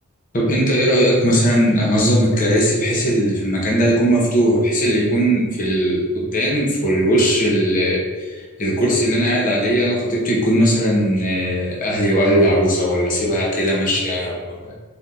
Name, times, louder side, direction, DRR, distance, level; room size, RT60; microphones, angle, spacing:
voice 1, 0.3-14.7, equal, 40° left, -4 dB, 0.8 m, -18 dB
4.3 x 2.7 x 3.6 m, 1.5 s
head